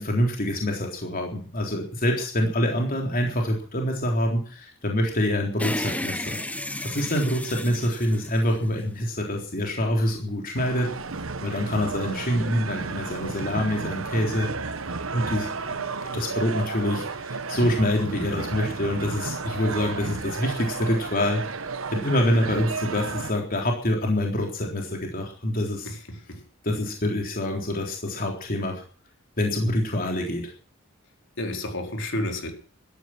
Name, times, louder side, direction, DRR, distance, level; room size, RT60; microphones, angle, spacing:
voice 1, 0.0-6.4 6.8-10.9 11.4-14.5 15.1-15.8 16.1-21.6 21.9-25.9 26.6-28.8 29.4-30.5, left 1 dB, 45° left, 3.7 m, -26 dB
sound 1, 5.6-9.1, left 1 dB, 5° left, 1.1 m, -33 dB
sound 2, 10.5-23.3, right 4 dB, 85° right, 1.3 m, -33 dB
voice 2, 25.8-26.4 31.4-32.5, left 1 dB, 65° left, 4.5 m, -31 dB
16.5 x 13.0 x 6.0 m
head